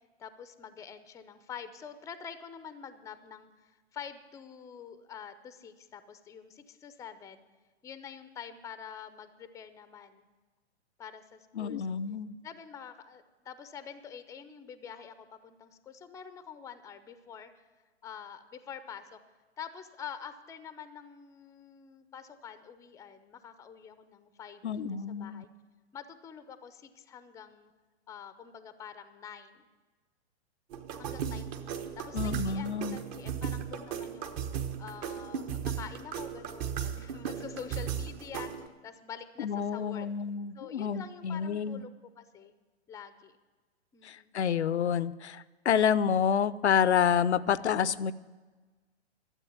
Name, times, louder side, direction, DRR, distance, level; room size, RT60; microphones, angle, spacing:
voice 1, 0.2-7.4 7.8-10.3 11.0-12.0 12.4-17.7 18.0-19.2 19.6-24.8 25.1-25.5 25.9-27.7 28.1-29.7 31.0-34.3 34.8-40.1 40.5-42.5 42.9-43.4 43.9-44.3, left 7 dB, 10° left, 12 dB, 0.6 m, -46 dB
voice 2, 11.6-12.4 24.6-25.4 32.1-33.0 39.4-41.8 44.0-48.1, left 7 dB, 75° left, 18 dB, 0.6 m, -28 dB
sound 1, 30.7-38.7, right 8 dB, 35° right, 1.1 m, -36 dB
13.0 x 7.8 x 9.3 m, 1.3 s
hypercardioid pair, 115°, 33 cm